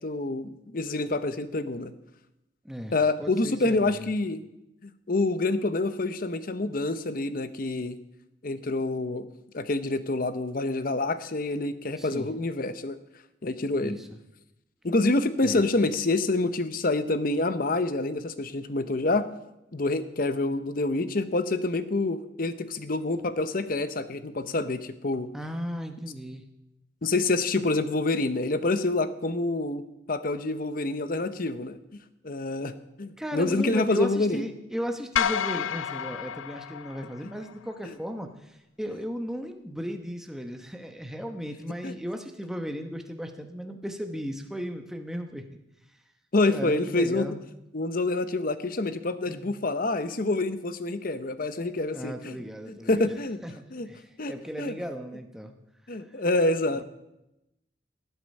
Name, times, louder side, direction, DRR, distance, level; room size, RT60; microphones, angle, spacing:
voice 1, 0.0-1.9 2.9-4.4 4.8-8.0 8.4-9.3 9.5-13.0 13.4-14.0 14.8-19.3 19.7-25.3 27.0-31.8 32.2-34.4 37.8-37.9 41.8-41.9 46.3-47.3 47.7-52.4 52.7-53.4 53.7-53.9 54.2-54.3 54.6-54.7 55.9-56.8, left 2 dB, 45° left, 12 dB, 0.8 m, -27 dB
voice 2, 3.2-4.1 12.0-12.3 13.8-14.1 15.4-15.6 25.3-26.4 33.2-45.4 46.4-47.4 49.3-49.5 51.9-53.1 53.4-53.5 53.8-55.5 56.8-56.9, equal, ahead, 5 dB, 1.0 m, -36 dB
sound 1, 35.2-37.5, left 8 dB, 85° left, 0.5 m, -30 dB
19.0 x 8.0 x 5.4 m, 0.91 s
head